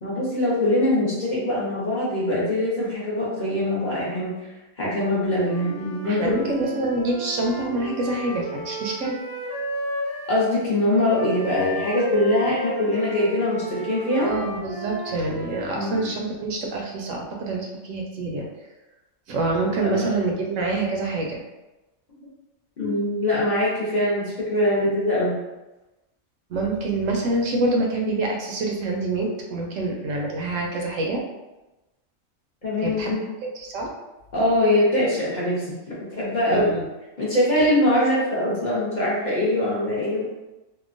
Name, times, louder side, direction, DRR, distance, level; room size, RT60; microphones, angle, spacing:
voice 1, 0.0-4.3 4.8-6.7 10.3-14.3 15.7-16.0 19.8-20.1 22.8-25.4 32.6-33.2 34.3-36.7 37.2-40.3, left 1 dB, 45° left, -7 dB, 0.7 m, -23 dB
Wind instrument woodwind instrument, 5.4-10.4 11.1-16.1, right 1 dB, 20° right, 0.6 m, -34 dB
voice 2, 6.0-9.2 14.2-18.5 19.3-21.4 26.5-31.2 32.8-33.1 33.5-33.9 36.5-36.8, right 2 dB, 85° right, 0 dB, 1.0 m, -26 dB
2.8 x 2.1 x 2.5 m, 1.0 s
omnidirectional pair, 1.3 m